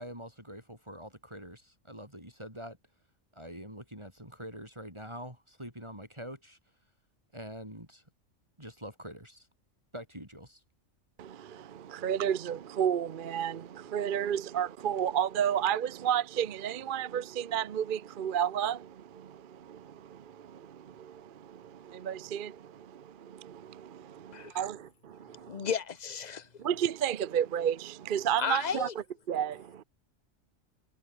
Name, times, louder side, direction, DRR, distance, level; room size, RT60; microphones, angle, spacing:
voice 1, 0.0-2.8 3.3-6.6 7.3-8.0 8.6-9.5 9.9-10.6, equal, 20° right, 6.6 m, -45 dB
voice 2, 11.2-25.7 26.6-29.8, right 9 dB, 50° right, 0.8 m, -32 dB
voice 3, 25.5-26.5 28.4-28.9, left 7 dB, 40° left, 0.9 m, -33 dB
omnidirectional pair, 1.3 m